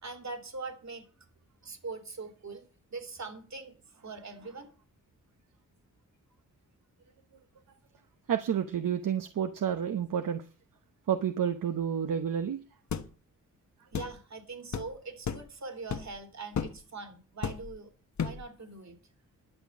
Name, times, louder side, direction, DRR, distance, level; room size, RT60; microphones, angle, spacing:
voice 1, 0.0-1.0 1.6-4.7 13.9-17.9 18.2-19.0, right 4 dB, 60° right, 5 dB, 3.1 m, -42 dB
voice 2, 8.3-10.5 11.1-12.6, right 8 dB, 80° right, 8 dB, 1.0 m, -30 dB
sound 1, 12.9-13.1 13.9-14.1 14.7-14.9 15.3-15.5 15.9-16.2 16.6-16.8 17.4-17.8 18.2-18.5, left 7 dB, 60° left, 1.2 m, -33 dB
11.0 x 7.3 x 7.1 m, 0.36 s
cardioid pair, 80°, 32 cm